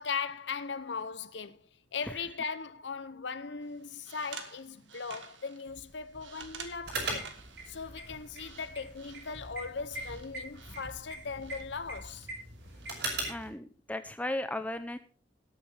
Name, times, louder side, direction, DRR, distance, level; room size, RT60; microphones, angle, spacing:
voice 1, 0.0-7.3 7.7-12.3, left 5 dB, 70° left, 0.8 m, -39 dB
sound 1, 3.6-13.5, right 6 dB, 85° right, 1.6 m, -52 dB
sound 2, 5.7-12.1, equal, 20° right, 2.3 m, -54 dB
sound 3, 6.8-13.5, right 2 dB, 70° right, 6.3 m, -40 dB
voice 2, 13.3-15.0, left 1 dB, 10° left, 0.7 m, -36 dB
18.5 x 8.4 x 3.4 m
head